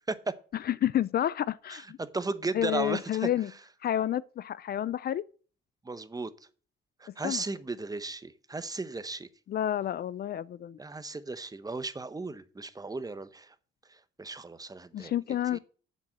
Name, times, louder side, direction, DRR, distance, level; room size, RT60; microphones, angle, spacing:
voice 1, 0.6-2.0 2.5-3.5 3.8-5.2 7.2-7.4 9.5-10.8 14.9-15.6, left 11 dB, 50° left, 0.4 m, -29 dB
voice 2, 1.7-3.3 5.8-6.3 7.0-9.3 10.8-13.5 13.9-15.1 15.5-15.6, right 3 dB, 20° right, 0.9 m, -35 dB
7.6 x 7.2 x 7.5 m
cardioid pair, 90°, 20 cm